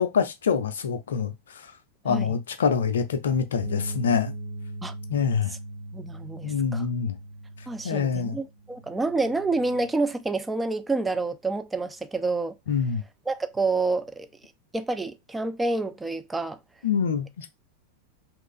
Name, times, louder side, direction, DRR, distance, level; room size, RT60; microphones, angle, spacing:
voice 1, 0.0-1.7 2.0-4.3 5.1-5.5 6.4-7.2 7.8-8.4 12.7-13.0 16.8-17.5, left 6 dB, 65° left, 0.5 m, -25 dB
Bass guitar, 3.6-9.9, right 1 dB, 65° right, 1.0 m, -39 dB
voice 2, 5.9-6.8 7.7-12.6 13.3-14.3 14.7-16.6, right 3 dB, 10° right, 0.4 m, -28 dB
3.1 x 2.4 x 3.6 m
figure-of-eight pair, 90°, 0 cm